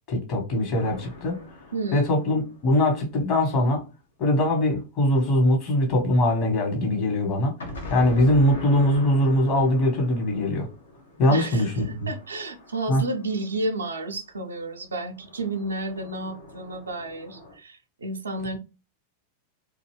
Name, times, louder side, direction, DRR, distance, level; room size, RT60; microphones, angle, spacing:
voice 1, 0.1-1.4 1.9-3.8 4.2-7.5 7.9-10.7 11.2-12.1 12.9-13.0, left 1 dB, 40° left, 1.2 m, -22 dB
sound 1, 0.7-3.6 7.6-13.8 15.1-17.6, left 2 dB, 70° left, 0.7 m, -42 dB
voice 2, 1.7-2.1 11.3-11.6 12.1-18.6, right 2 dB, 75° right, 0.5 m, -31 dB
2.6 x 2.3 x 3.2 m
figure-of-eight pair, 90°, 0 cm